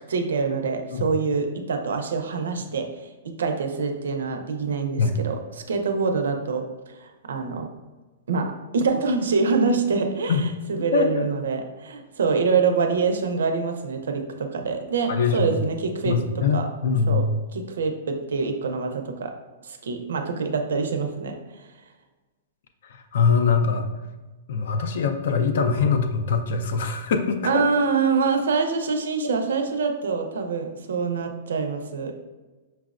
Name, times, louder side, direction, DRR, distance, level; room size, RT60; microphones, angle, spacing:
voice 1, 0.1-3.1 3.4-5.4 5.7-7.7 8.3-10.4 10.7-16.7 17.1-17.3 17.5-19.3 19.6-21.4 27.4-32.2, right 4 dB, 90° right, 5 dB, 0.5 m, -25 dB
voice 2, 10.9-11.3 15.1-15.5 16.0-17.3 22.8-23.9 24.5-27.9 29.2-29.4, left 5 dB, 50° left, 7 dB, 0.4 m, -23 dB
5.6 x 2.0 x 2.4 m, 1.2 s
hypercardioid pair, 180°, 0 cm